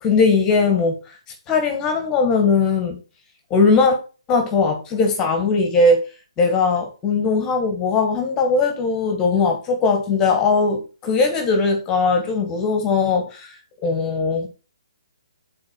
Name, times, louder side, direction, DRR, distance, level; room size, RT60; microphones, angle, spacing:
voice 1, 0.0-1.0 1.5-3.0 3.5-4.0 4.3-6.0 6.4-13.5 13.8-14.5, left 4 dB, 20° left, 5 dB, 1.6 m, -19 dB
6.4 x 4.1 x 5.8 m, 0.33 s
hypercardioid pair, 150°, 3 cm